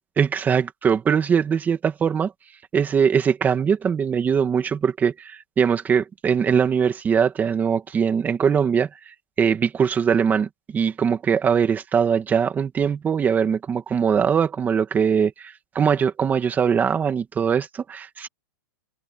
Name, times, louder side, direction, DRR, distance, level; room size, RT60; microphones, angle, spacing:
voice 1, 0.2-2.3 2.7-18.3, right 7 dB, 15° right, 2.2 m, -21 dB
hypercardioid pair, 145°, 11 cm